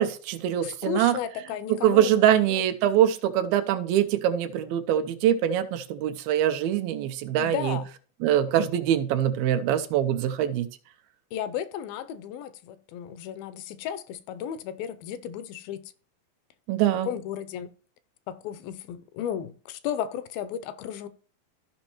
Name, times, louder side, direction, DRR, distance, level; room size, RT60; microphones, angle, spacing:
voice 1, 0.0-1.2 1.7-7.8 8.2-10.7 16.7-17.1, right 10 dB, 85° right, 2.5 m, -23 dB
voice 2, 0.6-2.6 7.3-7.9 8.6-8.7 11.3-15.8 17.1-17.7 18.3-21.1, left 9 dB, 85° left, 2.4 m, -34 dB
14.5 x 5.2 x 2.9 m
omnidirectional pair, 4.2 m